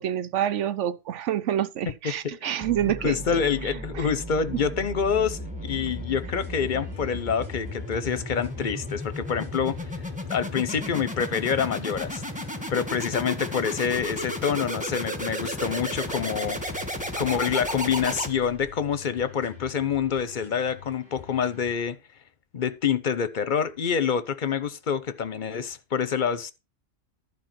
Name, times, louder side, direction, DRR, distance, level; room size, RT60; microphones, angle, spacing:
voice 1, 0.0-4.1, right 11 dB, 70° right, 1.0 m, -28 dB
sound 1, 2.6-18.7, left 1 dB, 5° right, 1.4 m, -34 dB
voice 2, 3.0-9.8 10.3-12.2 12.7-16.6 17.2-22.0 22.5-26.5, left 7 dB, 45° left, 0.9 m, -27 dB
sound 2, 5.9-21.9, left 5 dB, 45° right, 5.0 m, -48 dB
12.0 x 5.0 x 6.1 m
omnidirectional pair, 1.3 m